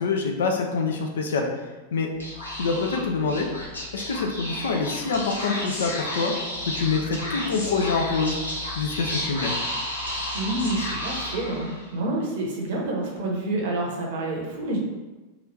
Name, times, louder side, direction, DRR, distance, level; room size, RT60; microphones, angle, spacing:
voice 1, 0.0-1.5 1.9-2.1 2.6-3.5 3.9-6.3 6.7-8.4 8.8-9.5, left 4 dB, 60° left, 3 dB, 0.4 m, -25 dB
Speech / Whispering, 2.1-11.9, left 1 dB, 80° left, 0.8 m, -32 dB
voice 2, 10.3-14.8, right 2 dB, 55° right, -2 dB, 0.8 m, -28 dB
3.0 x 2.4 x 3.1 m, 1.2 s
figure-of-eight pair, 90°, 0 cm